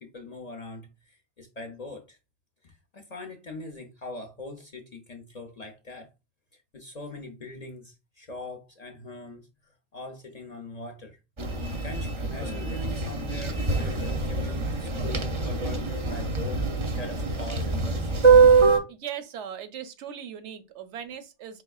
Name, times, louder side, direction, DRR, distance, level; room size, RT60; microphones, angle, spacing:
voice 1, 0.0-2.2 2.6-6.1 6.5-9.4 9.9-11.2 11.8-18.1, left 2 dB, 50° left, 0.5 m, -41 dB
sound 1, 11.4-18.8, right 4 dB, 35° right, 0.5 m, -23 dB
voice 2, 18.9-21.6, right 9 dB, 80° right, 0.9 m, -38 dB
4.6 x 3.3 x 2.3 m
omnidirectional pair, 1.2 m